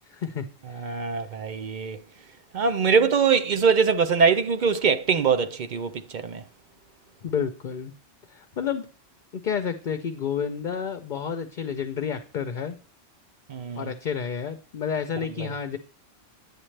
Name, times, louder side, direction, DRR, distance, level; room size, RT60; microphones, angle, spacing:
voice 1, 0.1-0.9 7.2-7.9 8.3-8.9 9.4-12.8 13.8-15.8, left 7 dB, 55° left, 0.7 m, -30 dB
voice 2, 0.8-2.0 2.5-6.4 13.5-13.9, right 6 dB, 50° right, 0.7 m, -23 dB
10.0 x 8.1 x 3.2 m
omnidirectional pair, 1.2 m